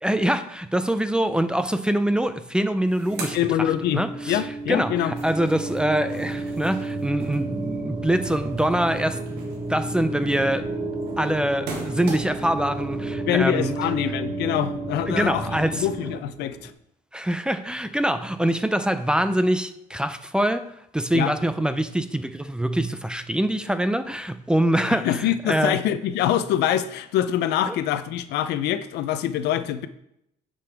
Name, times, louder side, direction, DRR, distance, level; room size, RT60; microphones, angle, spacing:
voice 1, 0.0-10.7 11.2-13.7 15.1-15.9 17.1-25.8 27.7-27.8, right 1 dB, 5° right, 0.4 m, -24 dB
sound 1, 2.2-2.3 2.5-4.3 4.7-12.6, right 3 dB, 85° right, 1.7 m, -41 dB
sound 2, 3.1-16.7, right 2 dB, 25° right, 1.0 m, -32 dB
voice 2, 3.3-5.1 13.3-15.4 15.7-16.7 21.1-21.3 25.0-29.9, left 11 dB, 80° left, 0.6 m, -24 dB
9.6 x 5.3 x 3.4 m
cardioid pair, 110°, 17 cm